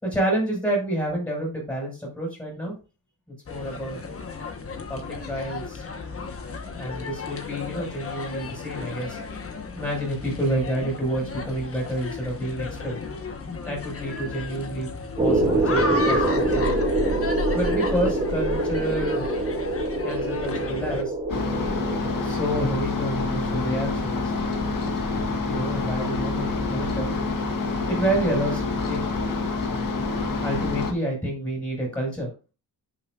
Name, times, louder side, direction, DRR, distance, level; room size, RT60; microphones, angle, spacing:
voice 1, 0.0-2.7 3.5-4.0 4.9-5.8 6.8-9.2 9.8-13.0 13.7-14.9 15.2-16.7 17.5-19.3 20.0-21.1 22.2-24.2 25.5-27.1 27.9-29.0 30.4-32.3, right 1 dB, 10° left, -3 dB, 5.7 m, -28 dB
sound 1, 3.5-21.0, left 3 dB, 35° left, 1.4 m, -34 dB
sound 2, 15.2-23.0, right 1 dB, 15° right, 2.1 m, -25 dB
sound 3, 21.3-30.9, left 3 dB, 60° left, 1.9 m, -27 dB
10.5 x 7.4 x 2.6 m, 0.32 s
wide cardioid pair, 150°, 38 cm